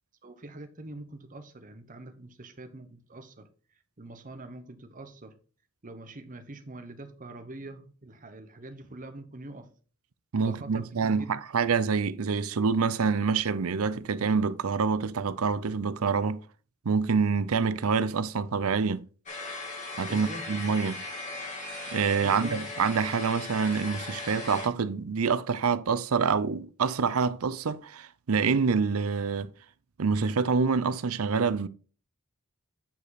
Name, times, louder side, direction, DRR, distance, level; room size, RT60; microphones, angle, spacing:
voice 1, 0.2-3.5 4.0-5.3 5.8-9.7 10.4-11.3 20.1-20.5 22.2-22.6, right 2 dB, 40° right, 1.1 m, -44 dB
voice 2, 10.3-16.4 16.8-19.1 20.0-21.0 21.9-29.5 30.0-31.7, right 5 dB, 80° right, 0.6 m, -26 dB
sound 1, 19.3-24.7, left 2 dB, 35° left, 2.4 m, -38 dB
8.9 x 5.1 x 4.2 m
head